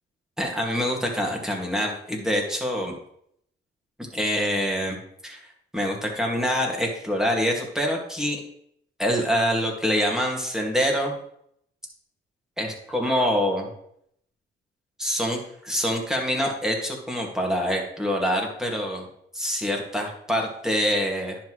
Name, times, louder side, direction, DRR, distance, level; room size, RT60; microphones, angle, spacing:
voice 1, 0.4-2.9 4.1-5.0 5.2-8.4 9.0-11.1 12.6-13.7 15.0-19.1 19.3-21.4, equal, 5° right, 0 dB, 2.0 m, -25 dB
10.5 x 5.8 x 3.2 m, 0.71 s
cardioid pair, 90°, 20 cm